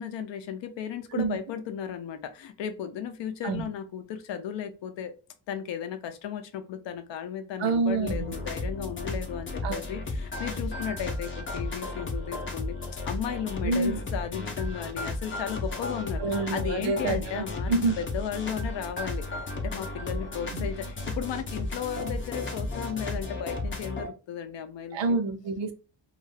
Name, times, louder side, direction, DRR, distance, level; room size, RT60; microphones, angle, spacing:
voice 1, 0.0-5.1 5.5-12.8 13.1-25.2, left 8 dB, 70° left, 9 dB, 0.6 m, -35 dB
voice 2, 7.6-8.3 9.6-9.8 13.6-14.0 16.2-18.0 20.5-20.6 24.9-25.7, right 3 dB, 70° right, 9 dB, 0.7 m, -27 dB
sound 1, 8.1-24.1, left 2 dB, 25° left, 0.5 m, -34 dB
2.4 x 2.3 x 3.2 m, 0.35 s
cardioid pair, 125°, 47 cm